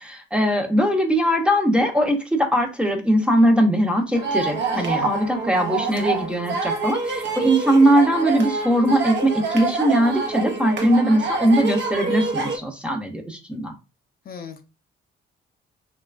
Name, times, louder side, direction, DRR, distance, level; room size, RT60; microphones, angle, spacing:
voice 1, 0.0-13.7, right 1 dB, 5° right, 3 dB, 0.6 m, -20 dB
sound 1, 4.1-12.6, right 4 dB, 65° right, 0.7 m, -26 dB
voice 2, 4.7-5.1 14.2-14.6, left 6 dB, 50° left, 7 dB, 0.5 m, -36 dB
2.9 x 2.2 x 2.4 m, 0.29 s
cardioid pair, 90°, 20 cm